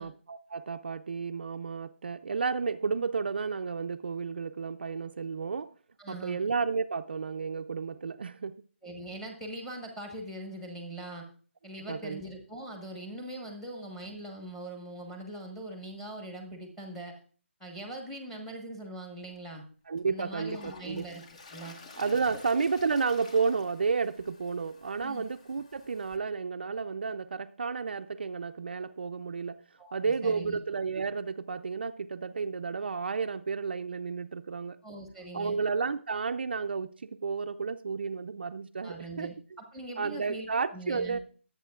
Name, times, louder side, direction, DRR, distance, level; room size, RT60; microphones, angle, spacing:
voice 1, 0.0-5.7 6.1-8.6 11.9-12.2 19.9-21.0 22.0-29.6 29.9-34.8 35.3-39.3 40.0-41.2, right 5 dB, 50° right, 0.5 m, -32 dB
voice 2, 6.0-6.4 8.8-11.2 11.6-17.1 17.6-19.6 20.1-21.2 21.5-21.7 22.3-22.4 25.0-25.3 29.8-30.6 34.8-35.6 38.8-41.2, right 1 dB, 5° left, 1.2 m, -42 dB
Toilet flush, 19.3-19.4 20.0-26.2, left 3 dB, 30° left, 1.0 m, -51 dB
21.0 x 8.3 x 2.4 m
hypercardioid pair, 175°, 7 cm